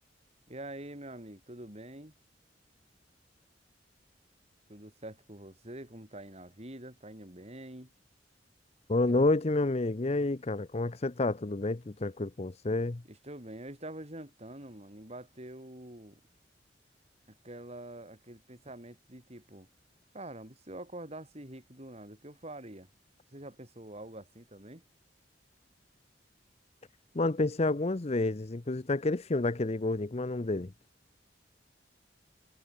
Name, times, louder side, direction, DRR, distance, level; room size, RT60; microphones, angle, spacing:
voice 1, 0.5-2.1 4.7-7.9 9.1-9.3 13.1-16.2 17.3-19.7 20.1-22.9 23.3-24.8, right 1 dB, 35° right, 6.3 m, -46 dB
voice 2, 8.9-13.0 27.1-30.7, left 2 dB, 35° left, 0.7 m, -29 dB
head